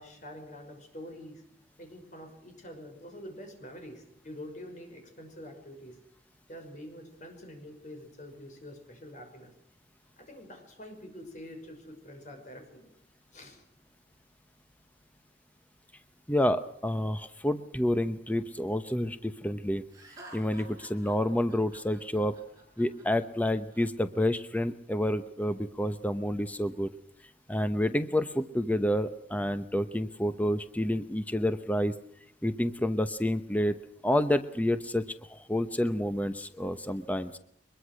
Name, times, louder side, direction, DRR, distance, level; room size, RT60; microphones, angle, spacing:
voice 1, 0.0-1.4 1.8-6.0 6.5-9.5 10.2-12.9 13.3-13.6, equal, 45° left, 5 dB, 6.0 m, -46 dB
voice 2, 16.3-19.8 20.3-22.4 22.8-26.9 27.5-31.9 32.4-33.8 34.0-37.3, left 1 dB, 10° left, 10 dB, 0.9 m, -29 dB
Laughter, 19.9-23.8, right 2 dB, 20° right, 7.2 m, -51 dB
23.0 x 21.5 x 6.4 m, 0.73 s
head